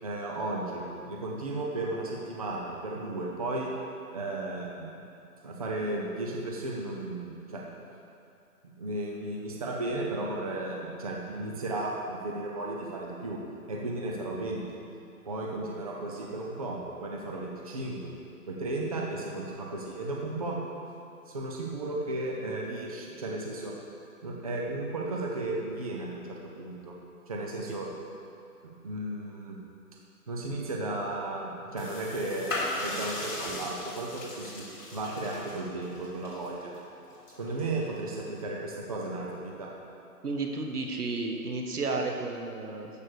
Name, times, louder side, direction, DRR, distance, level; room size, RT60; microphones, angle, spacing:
voice 1, 0.0-3.7 4.1-5.0 5.4-7.6 8.8-13.4 13.7-14.6 15.2-18.1 18.5-20.6 21.3-23.7 24.2-26.9 27.3-27.9 28.6-29.6 30.3-34.7 34.9-36.7 37.4-39.7, right 2 dB, 25° right, -2 dB, 0.8 m, -34 dB
sound 1, 31.8-38.4, left 2 dB, 60° left, 2.8 m, -39 dB
voice 2, 40.2-42.9, right 3 dB, 80° right, 2 dB, 1.7 m, -32 dB
13.5 x 5.4 x 6.5 m, 2.6 s
hypercardioid pair, 170°, 45 cm